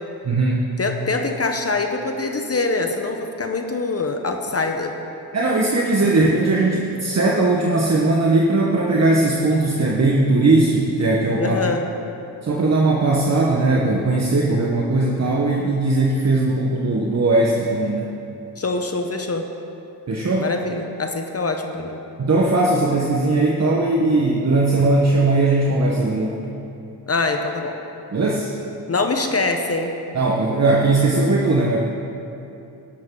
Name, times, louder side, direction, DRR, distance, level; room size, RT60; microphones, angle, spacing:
voice 1, 0.2-0.6 5.3-11.6 12.4-18.1 20.1-20.5 22.2-26.4 28.1-28.5 30.1-31.8, right 2 dB, 40° right, -2 dB, 1.3 m, -19 dB
voice 2, 0.8-5.0 11.4-11.8 18.6-19.5 20.4-22.0 27.1-27.8 28.9-29.9, left 3 dB, 35° left, 4 dB, 1.0 m, -24 dB
13.0 x 11.5 x 3.9 m, 2.8 s
cardioid pair, 75°, 42 cm